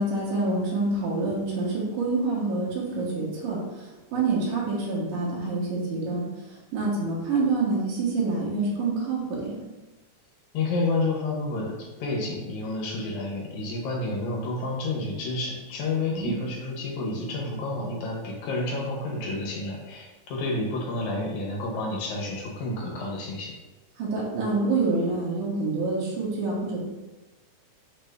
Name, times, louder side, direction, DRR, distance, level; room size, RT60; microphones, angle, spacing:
voice 1, 0.0-6.2 6.7-9.5 16.1-16.3 24.0-26.8, right 3 dB, 80° right, -5 dB, 2.6 m, -27 dB
voice 2, 10.5-23.5, left 2 dB, 70° left, -2 dB, 2.3 m, -30 dB
5.9 x 2.6 x 3.3 m, 1.1 s
omnidirectional pair, 3.6 m